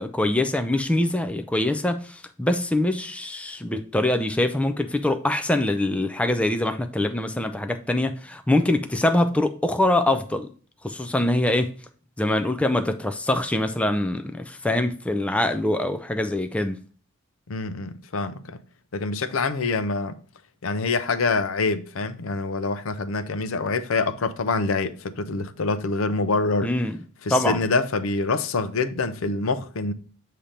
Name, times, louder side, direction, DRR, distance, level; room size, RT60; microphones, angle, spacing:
voice 1, 0.0-10.5 10.8-11.8 12.2-16.8 26.6-27.0 27.3-27.6, left 1 dB, 5° left, 0.4 m, -24 dB
voice 2, 17.5-18.6 18.9-20.2 20.6-26.7 27.3-29.9, left 3 dB, 65° left, 0.6 m, -25 dB
7.3 x 2.8 x 5.0 m
head